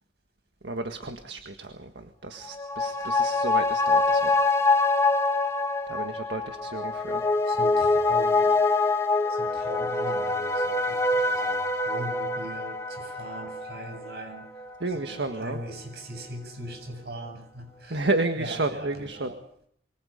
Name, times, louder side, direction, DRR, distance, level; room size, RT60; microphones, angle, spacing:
voice 1, 0.6-4.4 5.9-7.3 14.8-15.6 17.9-19.3, right 2 dB, 80° right, 6 dB, 1.7 m, -31 dB
sound 1, 2.4-15.3 15.6-15.7, left 3 dB, 15° left, 1.8 m, -25 dB
voice 2, 7.5-8.5 9.3-14.5 14.9-18.1 18.4-19.4, right 1 dB, 65° right, 5 dB, 7.8 m, -40 dB
26.5 x 24.5 x 5.2 m, 0.69 s
head